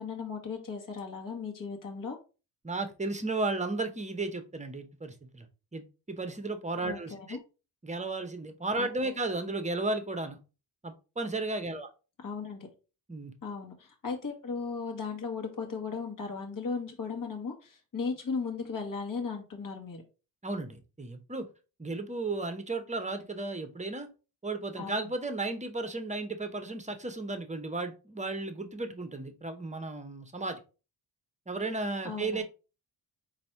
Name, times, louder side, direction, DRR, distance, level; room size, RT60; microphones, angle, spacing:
voice 1, 0.0-2.2 6.8-7.4 8.8-8.9 12.2-12.7 13.4-20.0 24.8-24.9 32.0-32.4, left 5 dB, 40° left, 1 dB, 1.5 m, -36 dB
voice 2, 2.6-5.5 5.7-7.4 7.8-10.4 10.8-11.9 13.1-13.3 20.4-21.5 21.8-24.1 24.4-30.6 31.5-32.4, right 2 dB, 15° right, 8 dB, 0.8 m, -34 dB
4.0 x 2.7 x 4.4 m, 0.32 s
cardioid pair, 75°, 48 cm